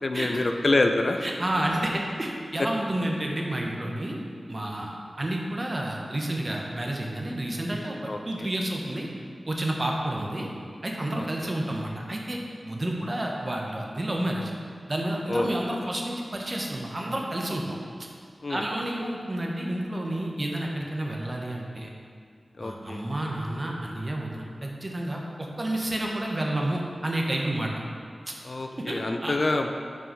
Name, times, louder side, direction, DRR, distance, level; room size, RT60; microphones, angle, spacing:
voice 1, 0.0-1.2 8.1-8.5 11.1-11.5 15.3-15.5 18.4-18.6 22.6-23.0 28.4-29.7, left 2 dB, 60° left, 5 dB, 0.5 m, -26 dB
voice 2, 1.2-4.2 4.5-9.1 9.5-10.5 10.8-14.5 14.9-17.8 18.5-21.9 22.6-27.7 28.7-29.4, right 1 dB, 40° right, -1 dB, 1.1 m, -30 dB
6.2 x 4.6 x 5.5 m, 2.2 s
cardioid pair, 45°, 0 cm